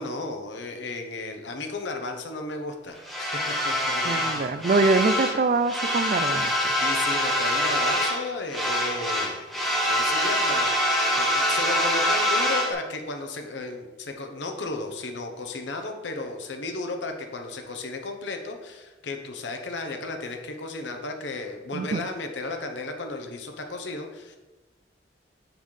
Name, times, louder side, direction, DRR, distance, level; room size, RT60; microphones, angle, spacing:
voice 1, 0.0-4.6 6.8-9.4 9.9-24.4, left 3 dB, 85° left, 4 dB, 0.9 m, -34 dB
sound 1, 3.0-5.4 5.6-8.2 8.5-12.7, equal, ahead, 0.9 m, -25 dB
voice 2, 4.0-6.5 21.7-22.0, right 3 dB, 45° right, 12 dB, 0.3 m, -24 dB
9.2 x 4.0 x 3.2 m, 1.1 s
head